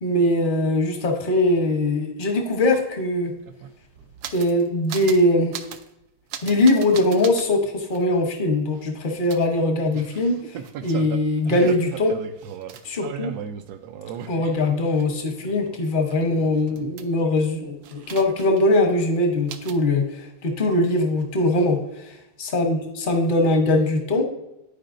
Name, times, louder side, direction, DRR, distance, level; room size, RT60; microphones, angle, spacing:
voice 1, 0.0-3.3 4.3-5.5 6.4-12.2 12.8-13.3 14.3-24.2, left 1 dB, 50° left, 3 dB, 0.6 m, -21 dB
sound 1, 2.9-3.0 3.2-4.6 4.9-5.2 5.5-5.9 6.3-7.5 7.9-8.0 9.3-15.0 15.4-17.4 17.8-18.7 19.0-19.1 19.5-19.8, right 8 dB, 85° right, 0.8 m, -37 dB
10.5 x 4.7 x 2.6 m, 0.89 s
omnidirectional pair, 2.3 m